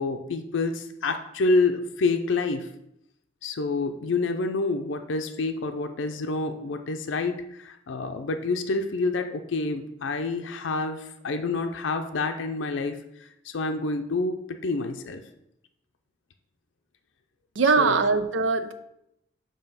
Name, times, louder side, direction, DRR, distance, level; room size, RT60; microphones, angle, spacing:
voice 1, 0.0-2.7 3.4-15.2 17.8-18.0, left 3 dB, 85° left, 6 dB, 0.5 m, -28 dB
voice 2, 17.6-18.7, right 4 dB, 85° right, 10 dB, 0.5 m, -21 dB
6.8 x 2.9 x 5.5 m, 0.81 s
head